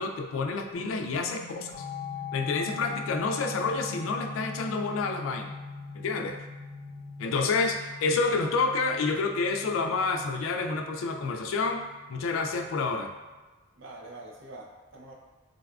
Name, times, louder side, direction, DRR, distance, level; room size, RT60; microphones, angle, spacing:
voice 1, 0.0-1.7 2.3-5.5 5.9-6.4 7.2-13.1, left 4 dB, 90° left, 4 dB, 0.3 m, -29 dB
sound 1, 0.7-13.3, left 4 dB, 35° left, 0.9 m, -42 dB
voice 2, 13.8-15.1, right 2 dB, 70° right, 0 dB, 0.5 m, -46 dB
3.8 x 2.3 x 2.3 m, 1.2 s
head